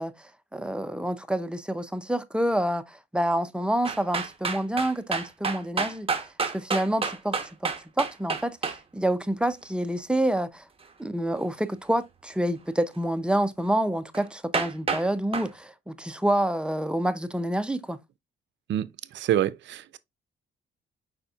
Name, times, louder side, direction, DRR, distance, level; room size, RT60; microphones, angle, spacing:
voice 1, 0.0-6.1 6.5-7.7 8.0-10.7 11.0-18.0, right 1 dB, 5° right, 0.5 m, -28 dB
sound 1, 3.8-8.8 14.1-14.2 14.5-15.0 15.3-15.5, right 5 dB, 30° right, 1.0 m, -29 dB
voice 2, 19.1-20.0, right 11 dB, 65° right, 0.5 m, -26 dB
4.9 x 4.2 x 2.3 m
cardioid pair, 90°, 20 cm